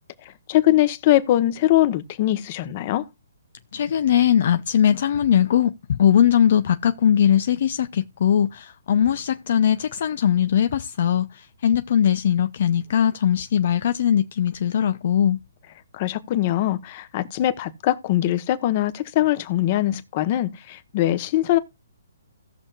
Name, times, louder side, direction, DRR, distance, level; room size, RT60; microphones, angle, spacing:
voice 1, 0.2-3.1 15.9-21.6, left 14 dB, 35° left, 1.1 m, -22 dB
voice 2, 3.7-15.4, left 9 dB, 55° left, 0.5 m, -20 dB
17.5 x 6.4 x 2.4 m
hypercardioid pair, 150°, 0 cm